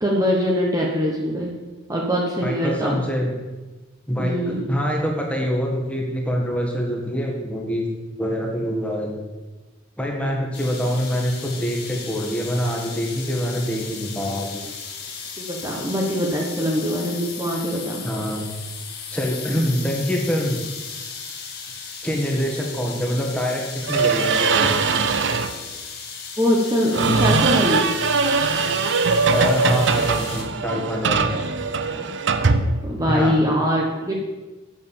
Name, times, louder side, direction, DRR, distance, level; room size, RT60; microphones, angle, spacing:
voice 1, 0.0-1.5 1.9-3.0 4.2-4.7 15.4-18.0 19.5-19.6 26.4-27.9 30.7-30.8 31.3-31.5 31.9-32.1 32.8-34.1, equal, 20° right, -2 dB, 1.2 m, -23 dB
voice 2, 2.4-3.3 4.1-7.9 8.2-9.2 10.0-14.6 18.0-18.5 19.1-20.6 22.0-24.7 29.3-31.3 33.1-33.3, equal, 5° left, 0 dB, 1.7 m, -25 dB
sound 1, 10.5-30.4, left 6 dB, 50° left, 1.9 m, -36 dB
sound 2, 23.8-25.6 26.9-33.2, right 4 dB, 65° right, 0.7 m, -21 dB
8.6 x 7.7 x 7.1 m, 1.2 s
head